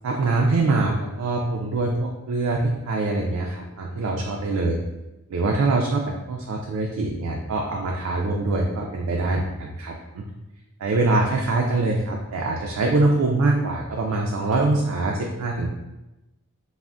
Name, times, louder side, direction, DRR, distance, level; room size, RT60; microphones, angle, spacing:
voice 1, 0.0-4.8 5.3-10.3 10.8-15.7, right 2 dB, 80° right, -1 dB, 0.3 m, -24 dB
3.3 x 2.0 x 2.4 m, 0.98 s
head